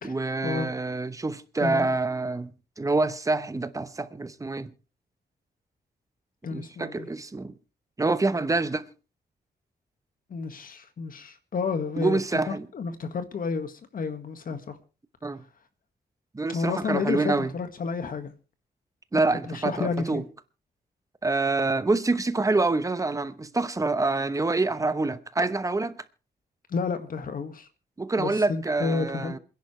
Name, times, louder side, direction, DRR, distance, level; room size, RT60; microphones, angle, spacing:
voice 1, 0.0-2.5 2.8-4.7 6.5-7.5 8.0-8.9 12.0-12.7 15.2-15.4 16.3-17.5 19.1-20.2 21.2-26.0 28.0-29.4, right 3 dB, 20° right, 0.9 m, -26 dB
voice 2, 6.4-7.1 10.3-14.8 16.5-18.3 19.1-20.2 26.7-27.7 28.2-29.4, left 5 dB, 55° left, 1.8 m, -31 dB
27.5 x 10.5 x 3.2 m
wide cardioid pair, 145°, 17 cm